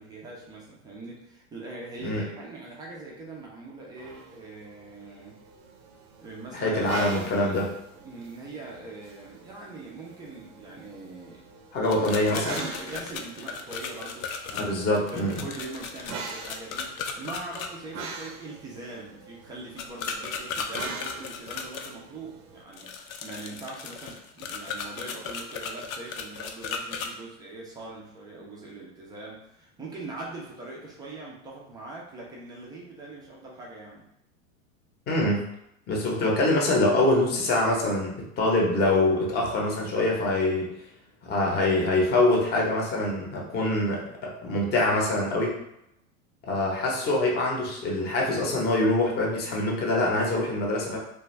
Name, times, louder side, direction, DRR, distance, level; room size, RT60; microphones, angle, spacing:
voice 1, 0.0-5.4 6.2-7.7 8.0-11.5 11.9-14.8 15.1-22.9 23.2-34.1, right 2 dB, 10° right, -3 dB, 0.3 m, -41 dB
sound 1, 4.0-22.6, right 4 dB, 90° right, 0.7 m, -44 dB
voice 2, 6.5-7.7 11.7-12.6 14.5-15.4 35.1-35.4 35.9-40.7 41.2-45.6 46.4-51.0, left 2 dB, 25° left, -1 dB, 0.7 m, -24 dB
sound 2, 11.8-17.7 19.8-21.9 22.7-27.1, left 6 dB, 75° left, 0.5 m, -36 dB
2.5 x 2.3 x 3.1 m, 0.79 s
supercardioid pair, 120°, 42 cm